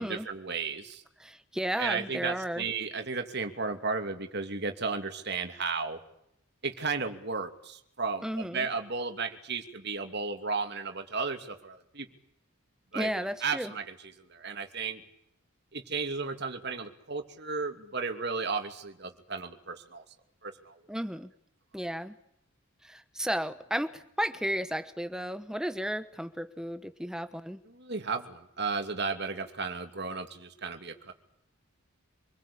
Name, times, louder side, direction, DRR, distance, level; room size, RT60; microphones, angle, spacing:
voice 1, 0.0-1.0 1.8-6.0 6.6-12.1 12.9-13.1 13.4-15.0 15.7-20.0 20.4-20.7 27.7-31.1, right 4 dB, 50° right, 6 dB, 2.7 m, -34 dB
voice 2, 1.2-2.7 8.2-8.7 12.9-13.7 20.9-21.3 21.7-22.1 22.8-27.6, equal, 5° right, 11 dB, 1.1 m, -33 dB
27.0 x 21.5 x 8.6 m, 0.75 s
head